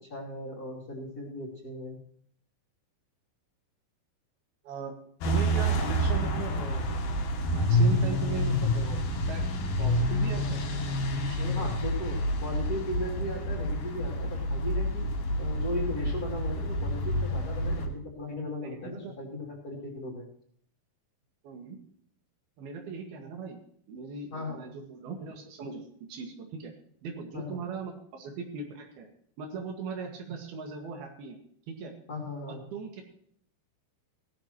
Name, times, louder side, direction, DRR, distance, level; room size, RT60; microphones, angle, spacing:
voice 1, 0.0-2.0 11.5-15.1 15.4-20.2 24.3-24.6 27.3-27.6 32.1-32.6, left 1 dB, 25° left, -7 dB, 3.0 m, -37 dB
sound 1, 5.2-17.9, equal, 85° left, 3.8 m, -28 dB
voice 2, 5.3-7.1 7.5-9.4 9.8-10.7 11.2-11.7 18.6-19.1 21.4-21.8 22.6-23.6 23.9-25.8 26.1-26.7 27.0-29.1 29.4-31.4 31.7-31.9 32.5-33.0, right 5 dB, 80° right, 3 dB, 3.8 m, -39 dB
17.0 x 13.0 x 3.0 m, 0.64 s
omnidirectional pair, 4.3 m